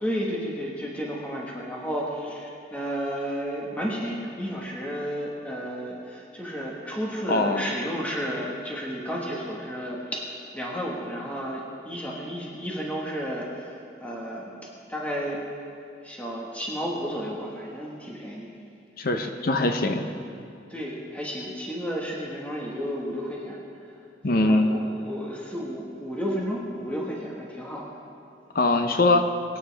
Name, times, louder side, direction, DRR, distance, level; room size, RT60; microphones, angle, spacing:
voice 1, 0.0-15.4 16.0-18.5 20.7-24.0 24.3-27.9, equal, 10° left, -3 dB, 1.5 m, -32 dB
voice 2, 7.3-7.7 19.0-20.1 24.2-24.7 28.5-29.3, left 2 dB, 55° left, 6 dB, 0.8 m, -22 dB
23.0 x 9.5 x 3.5 m, 2.5 s
head